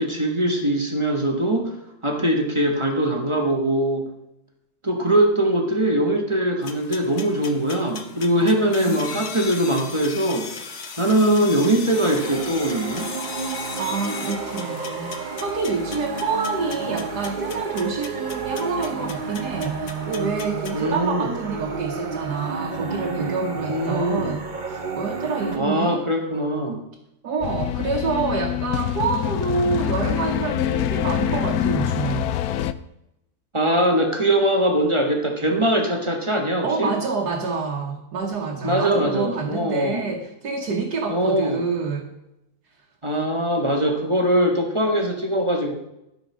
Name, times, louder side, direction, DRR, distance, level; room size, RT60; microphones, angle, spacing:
voice 1, 0.0-1.7 2.0-4.0 4.8-10.5 11.0-13.1 20.7-21.4 23.7-24.4 25.6-26.8 33.5-36.9 38.6-40.0 41.1-41.6 43.0-45.7, right 1 dB, 20° right, 2 dB, 1.3 m, -22 dB
sound 1, 6.6-20.8, left 5 dB, 50° left, 1.1 m, -38 dB
voice 2, 8.4-9.5 13.8-24.4 24.7-26.0 27.2-32.3 36.6-42.1, right 4 dB, 70° right, -1 dB, 1.8 m, -27 dB
sound 2, 11.9-25.6, right 5 dB, 40° right, 0.8 m, -31 dB
sound 3, 27.4-32.7, left 10 dB, 70° left, 0.9 m, -25 dB
13.0 x 5.8 x 6.2 m, 0.86 s
omnidirectional pair, 1.8 m